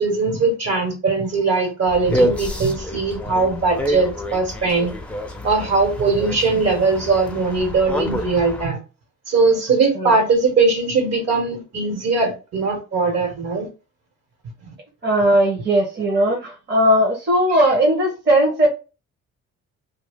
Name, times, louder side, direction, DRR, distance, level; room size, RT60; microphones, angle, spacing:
voice 1, 0.0-4.9 5.4-8.8 9.3-13.7 17.5-17.6, right 4 dB, 60° right, 1.5 m, -20 dB
sound 1, 1.9-8.7, equal, 5° left, 0.6 m, -27 dB
voice 2, 15.0-18.7, right 1 dB, 35° right, 1.0 m, -18 dB
2.7 x 2.6 x 3.6 m
cardioid pair, 90°, 30 cm